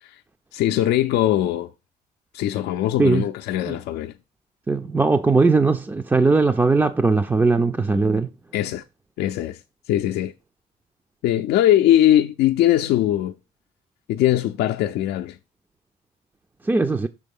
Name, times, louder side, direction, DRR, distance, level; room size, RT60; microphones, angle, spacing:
voice 1, 0.5-1.7 2.3-4.1 8.5-8.8 9.2-9.6 9.9-10.3 11.2-13.4 14.1-15.4, left 12 dB, 75° left, 0.5 m, -20 dB
voice 2, 4.7-8.3 16.7-17.1, right 3 dB, 10° right, 0.4 m, -19 dB
6.2 x 3.7 x 5.3 m
cardioid pair, 110°, 17 cm